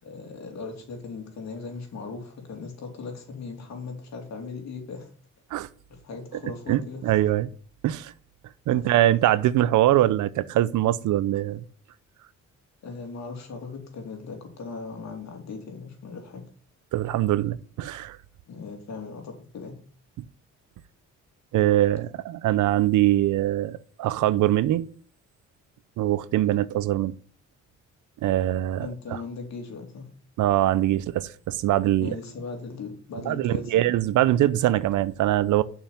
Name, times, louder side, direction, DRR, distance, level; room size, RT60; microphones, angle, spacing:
voice 1, 0.0-5.1 5.9-7.0 8.7-8.8 12.8-16.4 18.5-19.8 28.8-30.1 32.0-33.8, left 4 dB, 60° left, 3.0 m, -38 dB
voice 2, 6.7-7.5 7.8-8.1 8.7-11.6 16.9-18.2 21.5-24.9 26.0-27.1 28.2-29.2 30.4-32.2 33.2-35.6, right 14 dB, 75° right, 0.6 m, -23 dB
7.0 x 5.7 x 7.2 m
cardioid pair, 90°, 30 cm